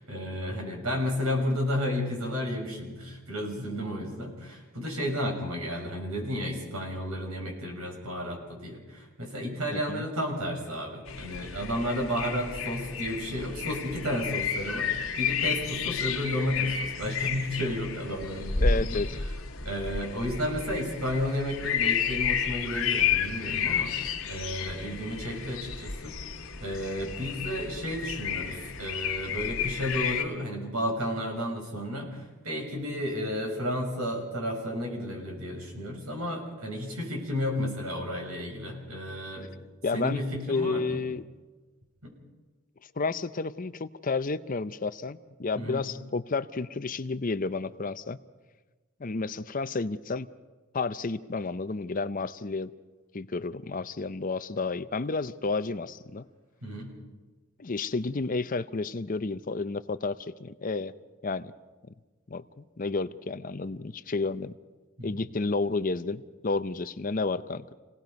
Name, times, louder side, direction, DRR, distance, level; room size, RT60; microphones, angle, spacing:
voice 1, 0.0-19.0 19.6-26.1 26.6-39.5 39.9-41.0 42.0-42.1 45.6-45.9 56.6-56.9 65.0-65.2, equal, 85° right, 1 dB, 6.3 m, -32 dB
voice 2, 9.7-10.0 18.6-19.2 39.8-41.3 43.0-48.2 49.0-50.3 50.7-52.7 53.1-56.3 57.6-60.9 61.2-61.5 62.3-64.5 65.0-67.7, left 3 dB, 40° left, 13 dB, 0.6 m, -31 dB
sound 1, 11.1-30.2, left 6 dB, 65° left, 1.9 m, -31 dB
28.5 x 18.5 x 5.3 m, 1.3 s
head